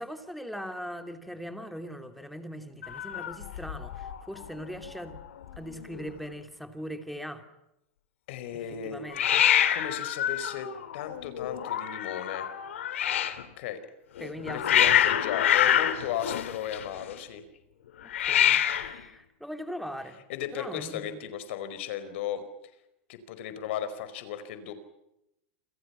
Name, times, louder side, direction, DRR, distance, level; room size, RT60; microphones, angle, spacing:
voice 1, 0.0-5.2 5.6-7.4 8.5-9.5 14.2-14.9 18.0-20.2 20.5-21.2, equal, ahead, 7 dB, 2.9 m, -40 dB
Hiss, 2.8-4.2 4.4-4.9 5.2-5.3 5.4-6.1 9.1-13.4 14.2-17.1 18.1-19.0, left 10 dB, 90° left, 3.0 m, -26 dB
voice 2, 8.3-9.0 9.7-10.7 10.9-12.5 13.6-13.8 14.5-17.4 20.3-22.4 23.1-24.7, left 9 dB, 65° left, 11 dB, 4.8 m, -35 dB
29.0 x 26.5 x 5.8 m, 0.87 s
supercardioid pair, 135°, 7 cm